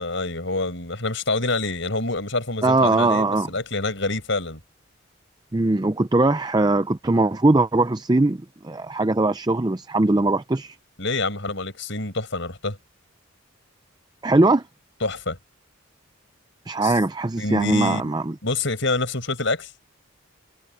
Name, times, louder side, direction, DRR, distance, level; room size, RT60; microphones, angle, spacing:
voice 1, 0.0-4.6 11.0-12.8 15.0-15.4 16.8-16.9 17.4-18.1 18.4-19.7, left 2 dB, 60° left, 6.7 m, -26 dB
voice 2, 2.6-3.5 5.5-8.4 8.6-10.8 14.2-14.6 16.7-18.3, right 2 dB, 20° right, 0.5 m, -20 dB
head